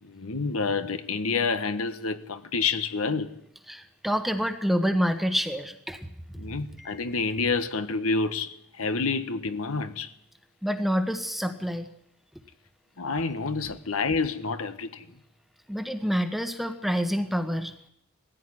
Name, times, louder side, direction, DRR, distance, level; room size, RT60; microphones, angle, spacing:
voice 1, 0.0-3.4 6.4-10.1 13.0-15.1, left 4 dB, 75° left, 1.3 m, -28 dB
voice 2, 3.7-6.0 6.8-7.0 10.6-11.9 15.7-17.7, equal, ahead, 1.3 m, -27 dB
20.0 x 15.5 x 9.9 m
head